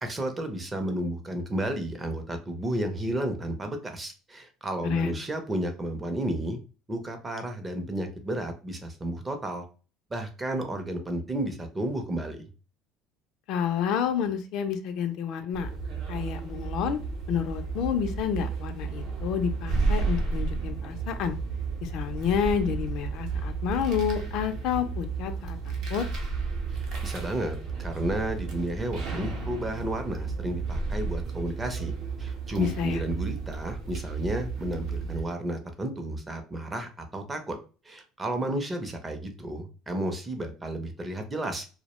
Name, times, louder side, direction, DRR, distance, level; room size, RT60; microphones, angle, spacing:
voice 1, 0.0-6.6 6.9-9.6 10.1-12.4 26.7-31.9 32.2-37.6 37.9-41.6, right 1 dB, 15° right, 5 dB, 0.5 m, -32 dB
voice 2, 4.8-5.2 13.5-15.7 16.1-17.0 17.3-21.3 21.8-26.1 32.6-33.0, left 8 dB, 60° left, 7 dB, 0.4 m, -29 dB
sound 1, 15.5-35.2, right 4 dB, 60° right, 0.7 m, -32 dB
2.3 x 2.1 x 2.9 m, 0.34 s
cardioid pair, 125°, 0 cm